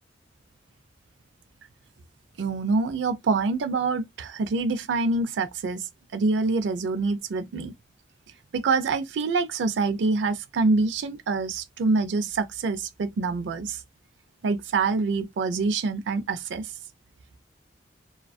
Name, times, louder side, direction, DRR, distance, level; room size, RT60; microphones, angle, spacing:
voice 1, 2.4-5.8 6.1-7.7 8.5-13.8 14.4-16.7, right 3 dB, 75° right, 0.4 m, -26 dB
2.5 x 2.3 x 2.2 m
head